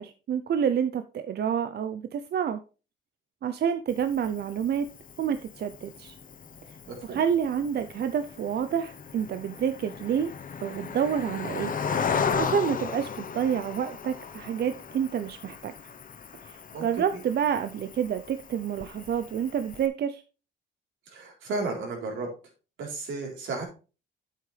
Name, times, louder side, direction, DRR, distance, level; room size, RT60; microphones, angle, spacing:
voice 1, 0.0-2.6 3.4-4.9 5.2-6.2 7.0-10.3 10.6-11.7 12.3-15.7 16.4-20.2, right 8 dB, 55° right, 9 dB, 0.6 m, -28 dB
Cricket, 3.9-19.9, left 6 dB, 45° left, 0.9 m, -36 dB
voice 2, 6.9-7.2 16.7-16.9 17.1-17.2 21.1-22.3 22.8-23.6, right 3 dB, 80° right, 0 dB, 3.8 m, -33 dB
9.2 x 7.6 x 3.3 m, 0.34 s
cardioid pair, 90°, 20 cm